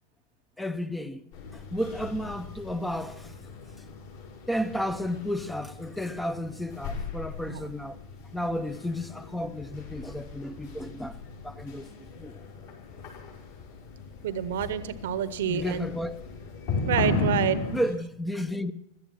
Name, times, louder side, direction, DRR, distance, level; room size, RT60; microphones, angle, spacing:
voice 1, 0.6-3.3 4.5-8.0 8.3-11.2 11.4-12.3 15.5-16.2 17.7-18.7, equal, 5° left, 0.8 m, -32 dB
sound 1, 1.3-17.8, left 3 dB, 55° left, 5.5 m, -36 dB
voice 2, 14.2-15.9 16.9-17.6, right 9 dB, 55° right, 1.0 m, -28 dB
17.5 x 12.5 x 6.0 m
figure-of-eight pair, 90°, 0 cm